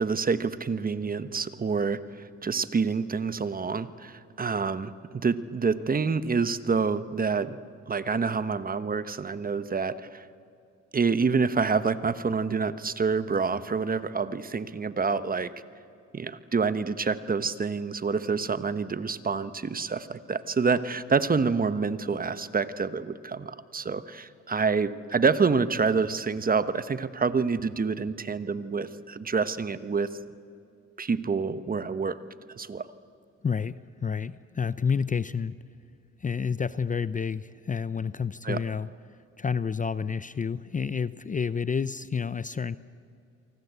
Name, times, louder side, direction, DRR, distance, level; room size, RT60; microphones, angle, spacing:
voice 1, 0.0-7.6 7.9-10.2 10.9-15.5 16.1-30.1 31.0-32.2 32.6-32.9 38.4-38.6, right 5 dB, 30° right, 13 dB, 1.1 m, -27 dB
voice 2, 33.4-35.5 36.2-38.9 39.4-42.8, left 6 dB, 25° left, 16 dB, 0.6 m, -29 dB
28.0 x 24.0 x 8.2 m, 2.6 s
cardioid pair, 90°, 30 cm